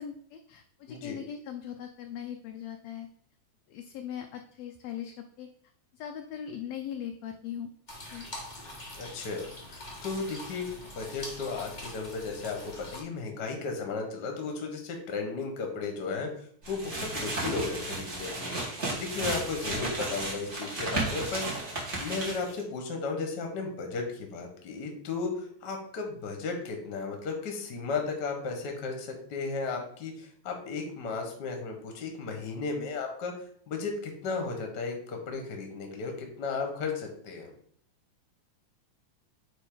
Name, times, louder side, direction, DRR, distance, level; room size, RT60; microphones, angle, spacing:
voice 1, 0.0-3.1 3.7-5.5 5.9-7.7 8.1-8.3, left 9 dB, 80° left, 5 dB, 1.5 m, -40 dB
voice 2, 0.9-1.2 9.0-10.7 10.9-16.3 16.7-18.5 18.9-33.3 33.7-37.5, left 4 dB, 50° left, 3 dB, 1.4 m, -35 dB
sound 1, 7.9-13.0, left 1 dB, 65° left, 0.4 m, -43 dB
sound 2, 16.6-22.6, right 2 dB, 30° right, 1.4 m, -34 dB
9.2 x 3.3 x 3.8 m, 0.63 s
omnidirectional pair, 3.5 m